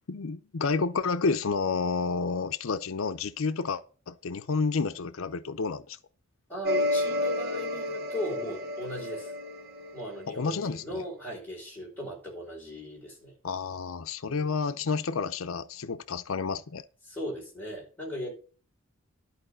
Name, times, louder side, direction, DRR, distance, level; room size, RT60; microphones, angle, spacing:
voice 1, 0.1-6.0 10.3-11.0 13.4-16.8, left 4 dB, 85° left, 0.6 m, -30 dB
voice 2, 6.5-9.3 9.9-13.3 14.2-14.6 17.1-18.3, equal, 10° left, 5.2 m, -38 dB
sound 1, 6.6-10.5, left 1 dB, 50° right, 1.0 m, -31 dB
11.5 x 4.6 x 7.8 m
head